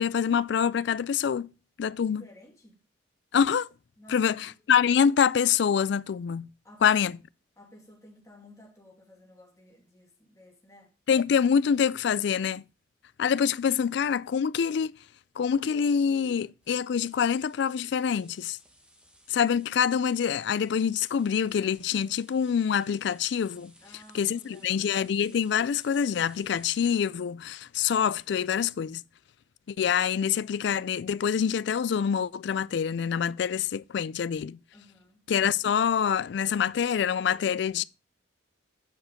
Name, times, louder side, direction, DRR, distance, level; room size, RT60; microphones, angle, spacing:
voice 1, 0.0-1.5 1.8-2.2 3.3-3.7 4.1-6.5 6.8-7.1 11.1-12.6 13.2-14.9 15.4-18.6 19.3-23.7 24.1-29.0 29.7-34.6 35.3-37.8, left 7 dB, 60° left, 0.3 m, -26 dB
voice 2, 2.1-2.8 4.0-4.6 6.6-7.0 7.6-10.9 23.8-25.0 34.7-35.2, equal, 15° left, 2.3 m, -54 dB
sound 1, 16.6-26.9, right 1 dB, 5° right, 1.2 m, -59 dB
8.7 x 5.1 x 5.0 m
head